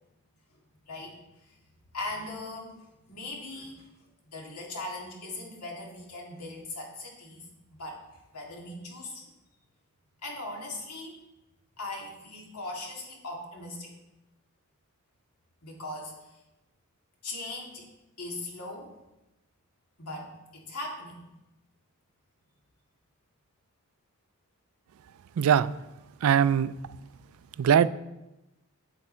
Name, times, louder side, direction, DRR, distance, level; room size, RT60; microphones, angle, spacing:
voice 1, 0.9-1.6 1.9-2.8 3.1-3.9 4.3-9.2 10.2-11.2 11.8-13.9 15.6-16.4 17.2-17.9 18.2-18.9 20.0-21.3 27.5-27.6, left 2 dB, 85° left, 2.1 m, -39 dB
voice 2, 25.4-25.7 26.2-26.7 27.6-27.9, right 8 dB, 65° right, 0.3 m, -21 dB
8.6 x 8.0 x 4.4 m
head